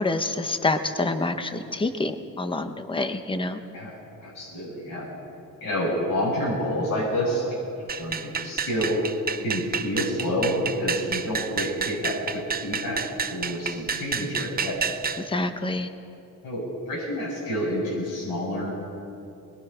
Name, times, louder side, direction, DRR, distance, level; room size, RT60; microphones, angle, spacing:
voice 1, 0.0-3.6 15.2-15.9, left 2 dB, 15° left, 8 dB, 0.9 m, -27 dB
voice 2, 3.7-5.1 5.6-9.0 9.4-13.0 13.3-14.8 16.4-18.7, equal, 90° left, -6 dB, 7.5 m, -28 dB
sound 1, 7.9-15.2, right 6 dB, 30° right, 0.6 m, -30 dB
24.5 x 21.0 x 5.7 m, 2.7 s
wide cardioid pair, 175°, 33 cm